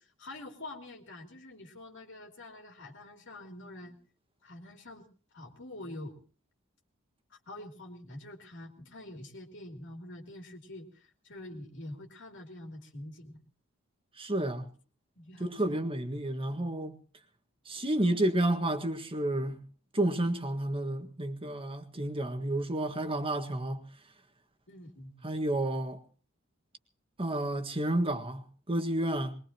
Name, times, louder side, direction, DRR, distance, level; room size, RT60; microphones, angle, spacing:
voice 1, 0.0-4.0 4.4-5.1 5.3-6.2 7.3-13.4 15.2-15.8 24.7-25.1, left 1 dB, 60° left, 2.8 m, -46 dB
voice 2, 14.1-14.7 15.4-17.0 17.7-19.7 19.9-23.9 25.2-26.0 27.2-29.4, right 1 dB, 25° right, 1.7 m, -31 dB
22.0 x 21.5 x 3.0 m
head